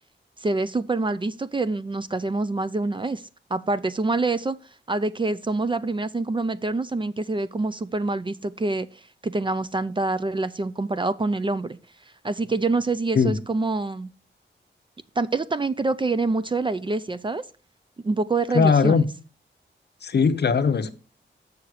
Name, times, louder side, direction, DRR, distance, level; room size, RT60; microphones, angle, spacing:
voice 1, 0.4-3.2 3.5-4.6 4.9-11.8 12.2-14.1 15.2-17.4 18.0-19.0, right 3 dB, 25° right, 0.4 m, -26 dB
voice 2, 18.5-19.0 20.0-20.9, left 5 dB, 60° left, 0.7 m, -19 dB
6.9 x 6.3 x 4.8 m
wide cardioid pair, 145°, 19 cm